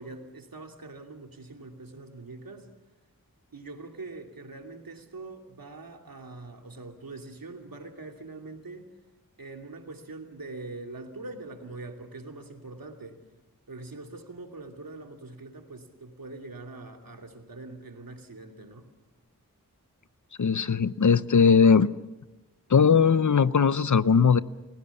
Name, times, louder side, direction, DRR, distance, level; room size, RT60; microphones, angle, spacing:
voice 1, 0.0-2.7 3.5-8.9 9.4-13.2 13.7-18.9, right 3 dB, 75° right, 4 dB, 2.8 m, -43 dB
voice 2, 20.4-21.9 22.7-24.4, left 6 dB, 55° left, 16 dB, 0.8 m, -19 dB
30.0 x 16.5 x 7.2 m, 1.0 s
cardioid pair, 45°, 35 cm